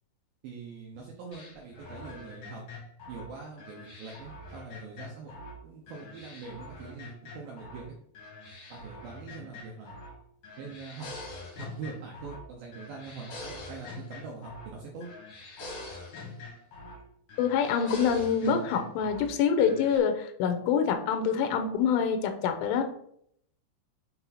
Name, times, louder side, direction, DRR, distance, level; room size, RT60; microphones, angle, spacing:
voice 1, 0.4-2.6 3.1-7.9 8.7-10.0 10.6-11.1 11.6-15.1, right 4 dB, 75° right, -1 dB, 2.2 m, -43 dB
sound 1, 1.3-5.6 5.9-7.8 8.1-10.2 10.4-12.5 12.7-14.7 15.0-17.0 17.3-19.3 19.6-20.0, left 2 dB, 50° left, 1.6 m, -44 dB
voice 2, 17.4-22.9, left 7 dB, 85° left, 6 dB, 3.4 m, -26 dB
7.7 x 4.7 x 4.2 m, 0.67 s
omnidirectional pair, 5.5 m